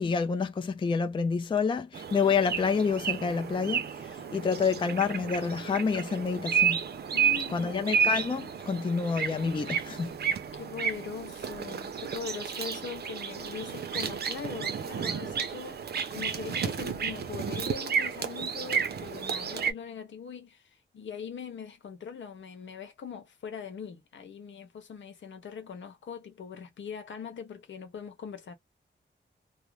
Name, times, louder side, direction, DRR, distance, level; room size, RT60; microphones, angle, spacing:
voice 1, 0.0-6.8 7.5-10.1, left 5 dB, 25° left, 0.4 m, -28 dB
sound 1, 1.9-19.7, right 7 dB, 60° right, 0.6 m, -32 dB
voice 2, 7.1-7.8 10.5-15.8 16.1-20.6 20.9-28.5, left 7 dB, 80° left, 0.9 m, -41 dB
2.5 x 2.0 x 3.0 m
wide cardioid pair, 145°, 19 cm